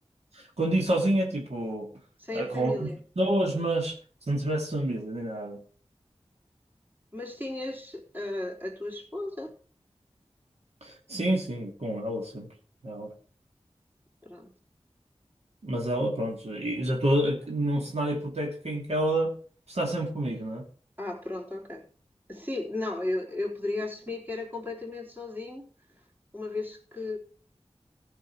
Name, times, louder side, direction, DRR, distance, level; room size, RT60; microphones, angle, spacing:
voice 1, 0.3-1.9 2.3-2.9 3.2-4.0 4.3-5.6 10.8-12.5 12.8-13.1 15.6-19.3 19.7-20.6, right 1 dB, 75° right, 0 dB, 2.4 m, -28 dB
voice 2, 2.2-3.0 7.1-9.5 14.2-14.5 21.0-21.9 22.3-25.7 26.3-27.2, left 2 dB, 20° right, -2 dB, 3.5 m, -35 dB
15.0 x 6.7 x 4.7 m, 0.42 s
wide cardioid pair, 45°, 11 cm